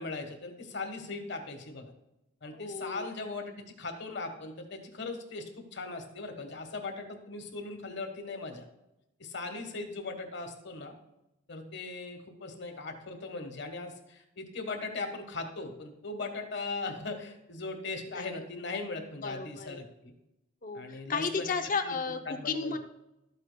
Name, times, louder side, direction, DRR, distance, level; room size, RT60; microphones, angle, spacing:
voice 1, 0.0-1.9 2.4-8.7 9.2-10.9 11.5-20.1 20.7-21.4 21.8-21.9 22.3-22.8, left 3 dB, 65° left, 5 dB, 1.3 m, -39 dB
voice 2, 2.5-3.1 18.1-18.4 19.2-19.8 20.6-22.8, left 4 dB, 45° left, 7 dB, 0.6 m, -34 dB
12.5 x 8.3 x 2.2 m, 0.89 s
head